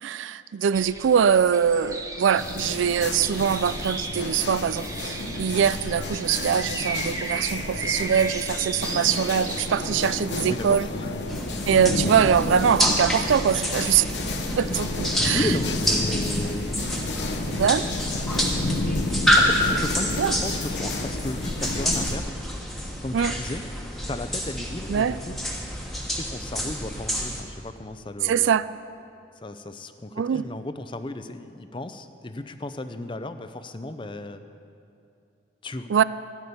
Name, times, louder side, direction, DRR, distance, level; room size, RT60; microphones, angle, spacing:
voice 1, 0.0-10.9 11.7-14.1 14.6-15.5 17.4-17.8 20.2-20.4 23.1-23.3 24.9-25.1 28.2-28.7 30.2-30.5 35.9-36.0, right 7 dB, 85° right, 16 dB, 0.4 m, -23 dB
sound 1, 0.7-10.0, right 3 dB, 20° right, 0.8 m, -35 dB
sound 2, 2.4-22.2, left 2 dB, 70° left, 1.0 m, -30 dB
voice 2, 10.5-11.1 15.3-16.8 17.1-18.3 19.4-22.3 23.0-23.6 24.1-25.4 26.1-28.5 29.4-34.4 35.6-35.9, left 2 dB, 25° left, 10 dB, 0.5 m, -35 dB
sound 3, 11.3-27.4, equal, ahead, 1.3 m, -28 dB
13.5 x 10.5 x 6.9 m, 2.6 s
head